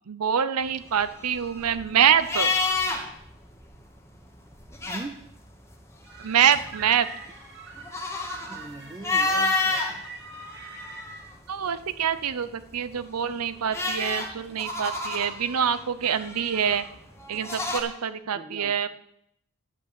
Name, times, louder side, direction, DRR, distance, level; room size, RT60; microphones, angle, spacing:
voice 1, 0.1-2.5 6.2-7.1 11.5-16.8 17.3-18.9, right 8 dB, 90° right, 13 dB, 0.7 m, -25 dB
sound 1, 0.8-3.3 3.6-3.7 4.5-5.4 6.0-9.9 10.5-11.5 13.0-17.8, left 3 dB, 10° left, 1.4 m, -29 dB
voice 2, 4.9-5.2 8.5-10.0 18.3-18.8, right 2 dB, 20° right, 13 dB, 0.5 m, -40 dB
sound 2, 6.0-11.2, right 3 dB, 60° right, 2.2 m, -43 dB
11.5 x 5.4 x 8.3 m, 0.78 s
head